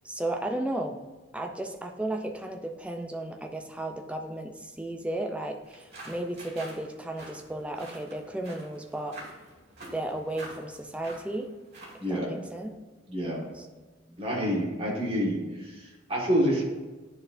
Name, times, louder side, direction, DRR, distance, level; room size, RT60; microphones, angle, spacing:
voice 1, 0.0-1.0 1.3-9.2 9.9-11.5 11.9-12.7 13.5-13.7 14.1-14.2, right 1 dB, 5° right, 4 dB, 0.4 m, -34 dB
sound 1, 5.6-12.1, right 1 dB, 55° right, 2.0 m, -47 dB
voice 2, 13.1-13.4 14.2-16.6, equal, 30° right, -4 dB, 1.6 m, -28 dB
9.8 x 4.2 x 2.6 m, 1.3 s
head